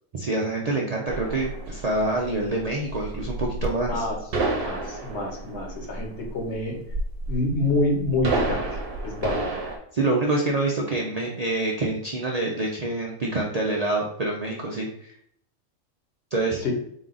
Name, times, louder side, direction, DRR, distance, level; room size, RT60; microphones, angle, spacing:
voice 1, 0.1-4.1 9.9-15.1 16.3-16.6, right 2 dB, 80° right, -2 dB, 0.3 m, -26 dB
sound 1, 1.1-9.8, right 2 dB, 50° right, 0.9 m, -30 dB
voice 2, 4.5-6.8 7.3-8.6 9.0-9.5 16.6-16.7, left 2 dB, 55° left, 0 dB, 1.2 m, -27 dB
4.1 x 2.4 x 3.9 m, 0.70 s
omnidirectional pair, 1.4 m